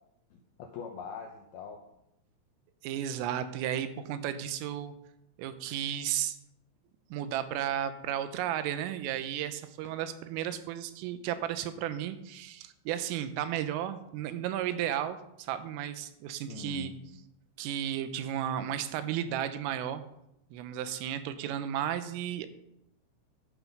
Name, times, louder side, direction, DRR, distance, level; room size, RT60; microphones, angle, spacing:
voice 1, 0.3-1.8 16.5-17.0, left 6 dB, 80° left, 3 dB, 2.2 m, -42 dB
voice 2, 2.8-4.9 5.4-6.4 7.1-16.9 17.6-20.0 20.5-22.5, right 10 dB, 85° right, 11 dB, 3.5 m, -34 dB
12.0 x 9.5 x 5.5 m, 0.81 s
omnidirectional pair, 5.8 m